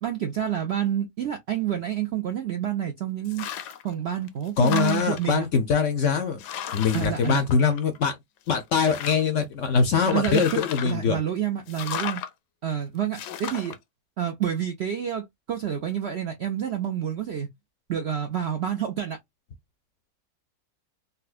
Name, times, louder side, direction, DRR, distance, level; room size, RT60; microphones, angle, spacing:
voice 1, 0.0-3.5 3.8-5.5 6.9-7.4 10.1-12.2 12.6-13.8 14.2-17.5 17.9-19.2, right 10 dB, 70° right, 0.6 m, -28 dB
sound 1, 3.3-3.9 4.3-5.4 6.0-6.1 6.4-8.1 8.5-9.4 10.1-11.0 11.7-12.3 13.1-13.8, left 9 dB, 80° left, 1.2 m, -35 dB
voice 2, 4.6-6.4 6.7-8.2 8.5-11.2, left 6 dB, 60° left, 0.8 m, -23 dB
4.1 x 2.2 x 2.4 m
omnidirectional pair, 1.8 m